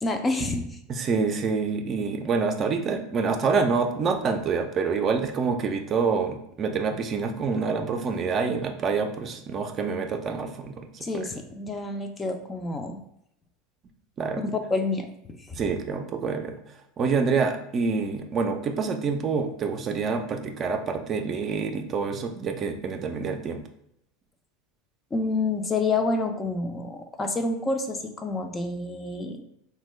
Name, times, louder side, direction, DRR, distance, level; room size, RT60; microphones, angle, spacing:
voice 1, 0.0-0.6 11.0-13.0 14.4-15.6 25.1-29.4, left 3 dB, 20° left, 5 dB, 0.4 m, -28 dB
voice 2, 0.9-11.2 14.2-14.4 15.6-16.6 17.0-23.6, right 5 dB, 40° right, 5 dB, 0.4 m, -27 dB
3.5 x 2.2 x 3.1 m, 0.74 s
hypercardioid pair, 95°, 0 cm